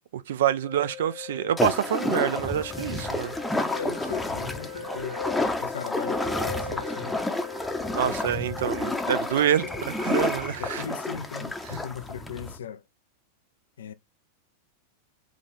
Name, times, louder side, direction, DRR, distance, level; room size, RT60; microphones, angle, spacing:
voice 1, 0.1-3.3 7.9-10.8 11.7-11.8, right 10 dB, 60° right, 0.4 m, -27 dB
sound 1, 0.6-10.3, left 13 dB, 45° left, 0.8 m, -43 dB
sound 2, 1.4-5.5 6.0-10.2, left 2 dB, 80° right, 0.9 m, -41 dB
sound 3, 1.6-12.6, left 2 dB, 5° left, 0.7 m, -30 dB
voice 2, 3.7-5.2 5.6-7.2 10.5-12.8 13.8-13.9, left 8 dB, 65° left, 0.3 m, -38 dB
4.8 x 2.3 x 3.7 m
figure-of-eight pair, 90°, 0 cm